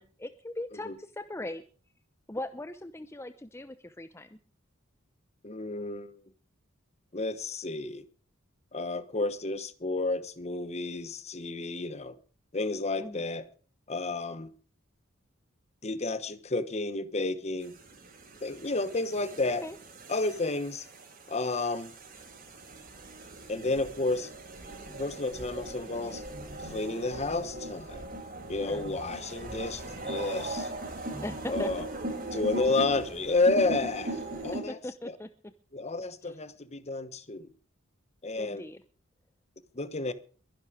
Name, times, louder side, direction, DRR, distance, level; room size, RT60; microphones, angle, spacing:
voice 1, 0.0-1.6 2.3-4.4 13.0-13.2 19.4-19.8 28.5-28.8 31.2-31.7 34.7-35.5 36.2-36.4 38.4-38.8, left 1 dB, 15° left, 0.7 m, -39 dB
voice 2, 5.4-6.1 7.1-8.0 8.7-12.2 12.5-13.5 13.9-14.5 15.8-17.7 18.4-19.7 20.1-20.8 21.3-21.9 23.5-24.3 25.0-26.2 26.6-28.0 28.5-30.7 31.5-31.9 32.3-34.8 35.0-35.2 35.7-37.5 38.2-38.6 39.7-40.1, left 3 dB, 35° left, 1.1 m, -31 dB
sound 1, 17.6-34.6, right 1 dB, 45° right, 5.9 m, -40 dB
22.5 x 11.0 x 5.0 m
head